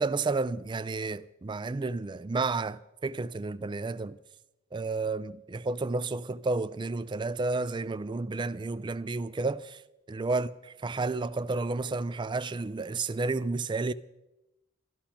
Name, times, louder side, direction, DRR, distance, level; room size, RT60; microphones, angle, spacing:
voice 1, 0.0-4.2 4.7-9.8 10.1-13.9, right 3 dB, 20° right, 0.4 m, -31 dB
13.0 x 12.0 x 5.8 m
head